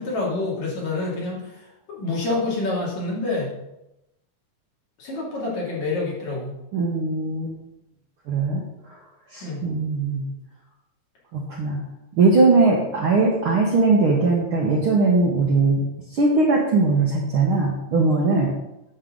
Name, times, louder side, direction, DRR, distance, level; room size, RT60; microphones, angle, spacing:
voice 1, 0.0-3.5 5.0-6.5 9.4-9.6, left 3 dB, 60° left, -5 dB, 3.7 m, -27 dB
voice 2, 6.7-7.5 8.3-9.0 9.3-10.3 11.3-11.8 12.1-15.8 16.1-18.5, right 3 dB, 60° right, -2 dB, 1.4 m, -20 dB
9.4 x 7.0 x 3.8 m, 0.88 s
omnidirectional pair, 3.6 m